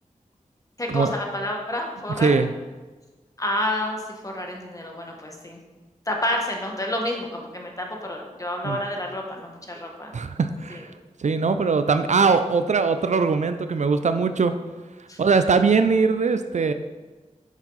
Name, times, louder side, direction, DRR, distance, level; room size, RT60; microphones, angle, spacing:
voice 1, 0.8-2.4 3.4-5.6 6.0-10.1 10.7-10.8 15.1-15.2, left 1 dB, 25° left, 0 dB, 1.5 m, -29 dB
voice 2, 2.2-2.5 8.6-8.8 10.1-10.9 11.2-14.5 15.2-16.7, right 4 dB, 60° right, 10 dB, 0.4 m, -21 dB
7.2 x 5.4 x 4.0 m, 1.2 s
cardioid pair, 40°, 13 cm